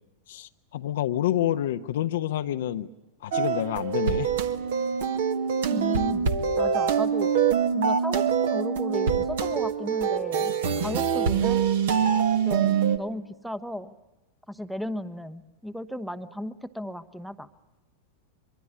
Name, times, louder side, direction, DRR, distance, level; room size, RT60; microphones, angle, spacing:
voice 1, 0.3-2.9 3.2-4.3, left 12 dB, 60° left, 7 dB, 0.9 m, -28 dB
sound 1, 3.3-13.0, right 7 dB, 55° right, 1.8 m, -24 dB
voice 2, 5.7-6.3 6.6-7.3 7.7-11.7 12.4-13.9 14.5-17.5, left 1 dB, ahead, 13 dB, 1.1 m, -35 dB
24.5 x 24.0 x 8.5 m, 1.0 s
figure-of-eight pair, 90°, 0 cm